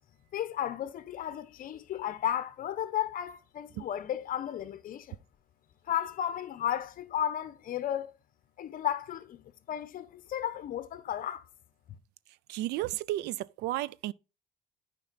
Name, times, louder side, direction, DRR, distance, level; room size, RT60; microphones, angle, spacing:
voice 1, 0.3-5.2 5.9-8.1 8.6-11.4, left 10 dB, 55° left, 1.0 m, -34 dB
voice 2, 12.5-14.1, right 15 dB, 85° right, 0.4 m, -33 dB
9.6 x 5.4 x 4.0 m
cardioid pair, 110°, 17 cm